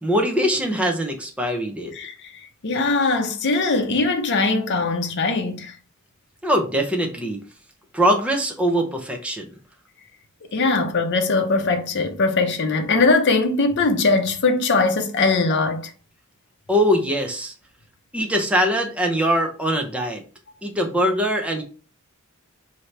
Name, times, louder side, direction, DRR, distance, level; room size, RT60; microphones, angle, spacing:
voice 1, 0.0-1.9 6.4-7.4 7.9-9.5 16.7-17.5 18.1-20.2 20.6-21.6, equal, 5° right, 0.7 m, -22 dB
voice 2, 2.6-5.7 10.5-15.9, left 3 dB, 55° left, 0.7 m, -21 dB
4.5 x 2.8 x 3.3 m
head